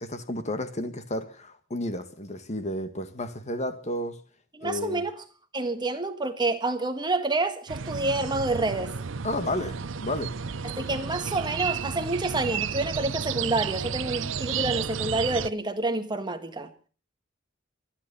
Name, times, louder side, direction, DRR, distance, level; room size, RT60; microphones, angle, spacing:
voice 1, 0.0-4.2 4.6-5.0 9.2-10.3, left 1 dB, 35° left, 1.8 m, -32 dB
voice 2, 4.5-5.1 5.5-8.9 10.6-16.7, right 2 dB, 25° right, 1.6 m, -28 dB
sound 1, 7.7-15.5, right 6 dB, 70° right, 0.7 m, -32 dB
24.5 x 10.0 x 5.5 m
head